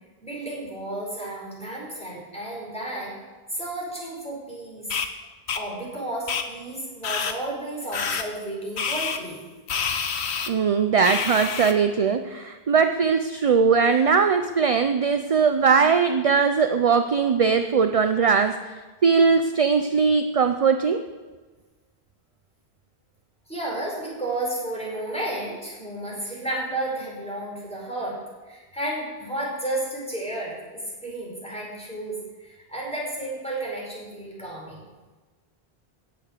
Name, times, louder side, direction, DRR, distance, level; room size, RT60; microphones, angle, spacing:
voice 1, 0.2-3.1 3.5-4.9 5.5-9.4 23.5-28.2 28.4-34.8, right 1 dB, 5° left, -4 dB, 4.8 m, -32 dB
sound 1, 4.9-5.1 5.5-5.6 6.3-6.4 7.0-7.3 7.9-8.2 8.8-9.2 9.7-10.5 11.0-11.7, left 6 dB, 85° left, 1.2 m, -27 dB
voice 2, 10.5-18.8 19.0-21.0, right 5 dB, 45° right, 8 dB, 0.5 m, -20 dB
17.0 x 7.1 x 6.7 m, 1.3 s
omnidirectional pair, 1.1 m